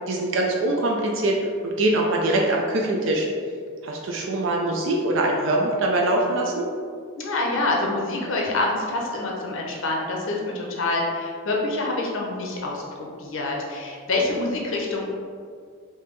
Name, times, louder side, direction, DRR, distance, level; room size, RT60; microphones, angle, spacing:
voice 1, 0.1-1.4 1.6-3.3 3.8-6.7, right 1 dB, 65° right, -1 dB, 0.4 m, -23 dB
voice 2, 7.2-12.8 13.2-15.0, left 2 dB, 70° left, -1 dB, 0.6 m, -26 dB
3.5 x 2.8 x 3.2 m, 2.1 s
head